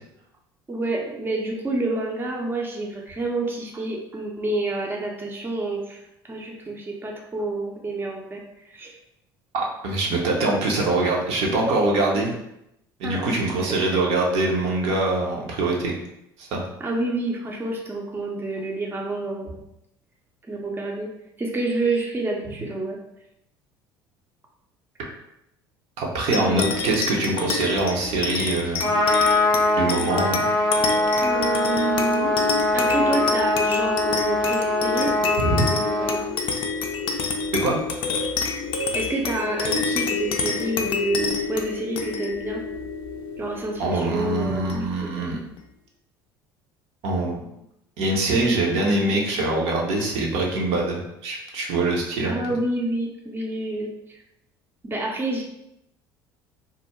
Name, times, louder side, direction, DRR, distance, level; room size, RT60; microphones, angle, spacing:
voice 1, 0.7-6.0 6.3-8.4 8.7-8.9 13.0-13.3 13.6-14.0 16.8-19.5 20.5-21.1 21.4-23.0 26.3-26.7 31.2-32.3 32.7-35.1 35.5-36.2 38.8-42.6 43.4-45.3 52.2-54.2 54.8-55.4, right 2 dB, 15° right, 0 dB, 0.5 m, -28 dB
voice 2, 9.5-12.3 13.0-15.9 16.4-16.6 26.0-28.9 29.7-30.4 35.4-35.7 37.6-37.8 43.8-45.4 47.0-47.5 48.0-52.4, right 2 dB, 60° right, -1 dB, 0.7 m, -23 dB
sound 1, 26.3-45.2, left 5 dB, 45° left, 0.4 m, -28 dB
Trumpet, 28.6-36.2, left 1 dB, 80° right, 0.9 m, -22 dB
2.3 x 2.0 x 3.0 m, 0.82 s
hypercardioid pair, 65°, 12 cm